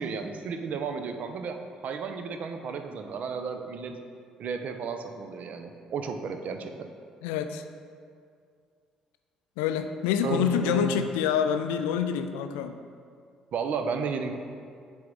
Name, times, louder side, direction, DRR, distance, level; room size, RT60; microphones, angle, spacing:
voice 1, 0.0-4.0 4.4-6.9 10.2-11.1 13.5-14.4, right 5 dB, 50° right, 7 dB, 0.6 m, -33 dB
voice 2, 7.2-7.6 9.6-12.7, left 8 dB, 70° left, 8 dB, 0.4 m, -27 dB
7.7 x 3.5 x 5.3 m, 2.2 s
figure-of-eight pair, 45°, 3 cm